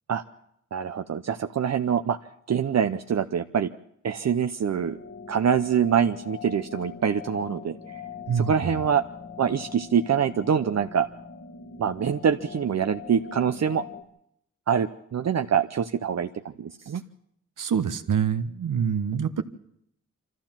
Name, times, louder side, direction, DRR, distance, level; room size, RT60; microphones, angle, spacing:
voice 1, 0.7-2.2 2.5-3.7 4.0-5.0 5.3-7.8 8.3-9.0 9.4-11.1 11.8-13.8 14.7-17.0, right 7 dB, 55° right, 8 dB, 0.7 m, -25 dB
sound 1, 4.7-14.0, left 6 dB, 50° left, 1.8 m, -42 dB
voice 2, 8.3-8.8 17.6-19.4, right 7 dB, 85° right, 10 dB, 1.2 m, -26 dB
24.5 x 14.5 x 7.4 m, 0.75 s
wide cardioid pair, 100°, 31 cm